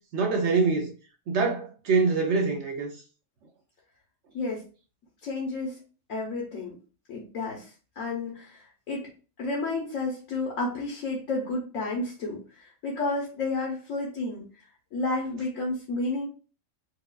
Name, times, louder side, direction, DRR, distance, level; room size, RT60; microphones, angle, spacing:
voice 1, 0.1-0.9 1.3-2.9, right 4 dB, 65° right, 0.8 m, -24 dB
voice 2, 5.2-5.8 6.1-6.8 7.1-9.1 9.4-14.4 14.9-16.3, left 3 dB, 70° left, 1.2 m, -31 dB
4.7 x 2.4 x 2.3 m
omnidirectional pair, 1.5 m